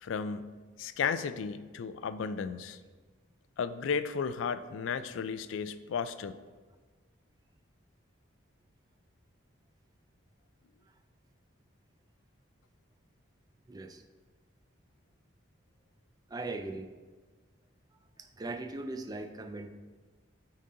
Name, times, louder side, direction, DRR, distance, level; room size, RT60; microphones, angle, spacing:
voice 1, 0.0-2.8 3.6-6.3, left 6 dB, 75° left, 13 dB, 0.3 m, -34 dB
voice 2, 13.7-14.0 16.3-16.9 18.2-19.7, right 2 dB, 20° right, 8 dB, 0.3 m, -39 dB
9.2 x 3.9 x 3.8 m, 1.4 s
head